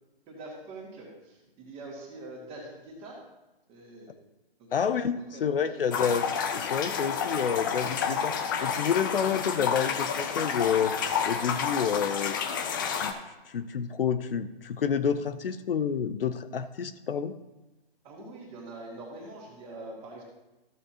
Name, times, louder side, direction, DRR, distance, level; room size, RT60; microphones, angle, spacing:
voice 1, 0.3-3.2 3.7-4.1 4.6-4.7 5.1-6.0 18.0-20.2, right 2 dB, 20° right, -2 dB, 2.2 m, -44 dB
voice 2, 4.7-6.2 6.5-11.0 11.2-17.3, left 7 dB, 65° left, 11 dB, 0.6 m, -29 dB
sound 1, 5.9-13.1, left 7 dB, 20° left, 0.5 m, -30 dB
14.0 x 7.1 x 2.9 m, 1.1 s
hypercardioid pair, 145°, 30 cm